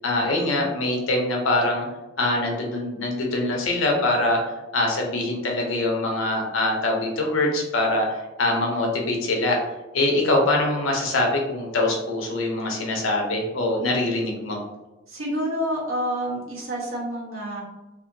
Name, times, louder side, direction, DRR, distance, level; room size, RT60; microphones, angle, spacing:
voice 1, 0.0-1.9 2.2-4.4 4.7-9.6 9.9-14.6, left 2 dB, 75° left, 0 dB, 0.7 m, -23 dB
voice 2, 15.1-17.6, equal, 80° right, -4 dB, 1.0 m, -28 dB
2.7 x 2.5 x 2.6 m, 1.0 s
head